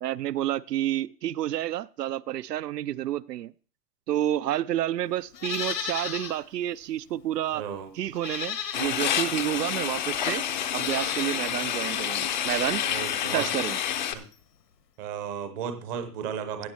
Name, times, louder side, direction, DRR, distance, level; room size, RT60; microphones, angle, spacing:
voice 1, 0.0-3.5 4.1-7.6 8.0-10.4 10.7-12.8 13.3-13.8, right 12 dB, 85° right, 0.7 m, -29 dB
Livestock farm animals working animals, 5.3-6.4 6.8-6.9 8.1-9.2 10.0-10.1 10.6-11.4 13.1-14.0 14.3-14.4, left 8 dB, 85° left, 2.2 m, -35 dB
voice 2, 7.5-7.9 12.8-13.5 14.1-14.2 15.0-16.7, right 8 dB, 15° right, 0.6 m, -34 dB
sound 1, 8.7-14.1, left 10 dB, 30° left, 0.5 m, -29 dB
16.0 x 6.3 x 4.3 m
hypercardioid pair, 155°, 47 cm